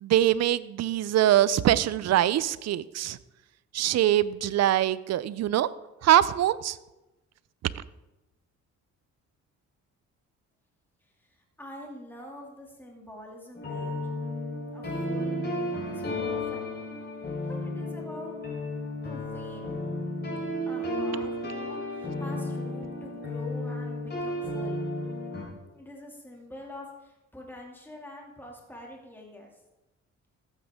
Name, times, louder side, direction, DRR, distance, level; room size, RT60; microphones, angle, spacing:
voice 1, 0.0-3.2 3.7-5.7 6.0-6.8, right 12 dB, 60° right, 18 dB, 0.5 m, -23 dB
voice 2, 11.0-14.0 14.7-16.6 17.5-18.4 19.0-19.8 20.7-24.9 25.7-29.6, left 1 dB, 5° left, -1 dB, 2.4 m, -45 dB
sound 1, 13.6-25.4, left 1 dB, 35° left, 3.9 m, -33 dB
14.0 x 8.1 x 3.6 m, 1.0 s
cardioid pair, 90°, 30 cm